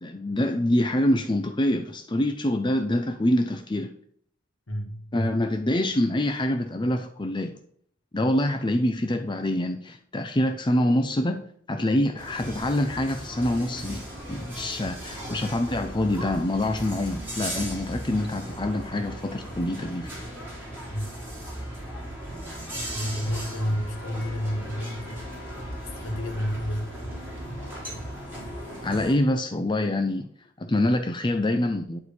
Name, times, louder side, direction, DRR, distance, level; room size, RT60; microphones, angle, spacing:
voice 1, 0.0-3.9 5.1-7.5 8.1-14.0 14.3-20.1 28.8-30.3 30.6-32.0, left 1 dB, 25° left, 0.6 m, -25 dB
voice 2, 4.7-5.4 20.9-21.1 22.9-25.4 26.0-26.9, equal, 90° left, 2.1 m, -30 dB
sound 1, 12.2-29.2, right 1 dB, 10° right, 4.0 m, -37 dB
11.5 x 4.7 x 7.1 m
head